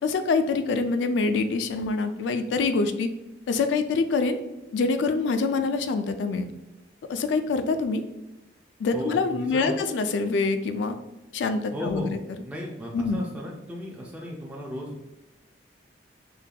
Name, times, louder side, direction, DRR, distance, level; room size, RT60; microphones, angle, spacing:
voice 1, 0.0-3.1 3.5-4.4 4.7-6.5 7.1-8.0 8.8-11.0 11.3-12.2 12.9-13.2, left 4 dB, 80° left, 9 dB, 0.3 m, -25 dB
voice 2, 8.9-9.8 11.7-12.2 12.4-15.0, left 1 dB, 10° right, -3 dB, 0.4 m, -35 dB
3.6 x 2.7 x 2.2 m, 1.0 s
head